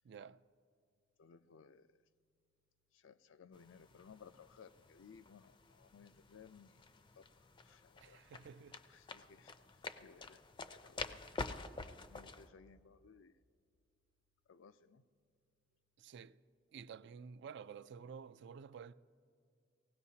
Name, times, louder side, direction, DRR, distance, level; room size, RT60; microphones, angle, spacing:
voice 1, 0.0-0.4 8.0-8.8 16.0-16.4 16.7-18.9, right 6 dB, 65° right, 0.3 m, -51 dB
voice 2, 1.2-2.0 2.9-6.8 7.2-8.3 8.9-10.4 10.8-11.2 11.7-13.4 14.5-15.0, left 6 dB, 80° left, 0.4 m, -61 dB
sound 1, 3.5-12.5, left 3 dB, 25° left, 0.5 m, -49 dB
19.0 x 16.0 x 2.8 m
head